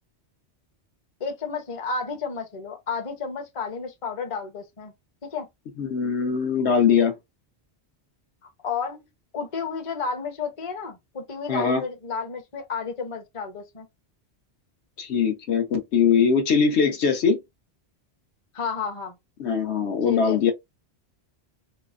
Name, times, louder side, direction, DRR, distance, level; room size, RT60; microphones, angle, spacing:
voice 1, 1.2-4.9 5.2-5.5 8.6-9.0 9.3-13.9 18.5-19.2 20.0-20.5, left 5 dB, 35° left, 0.7 m, -31 dB
voice 2, 5.8-7.1 11.5-11.8 15.0-17.4 19.4-20.5, left 6 dB, 80° left, 1.1 m, -21 dB
4.2 x 2.1 x 2.3 m
omnidirectional pair, 1.1 m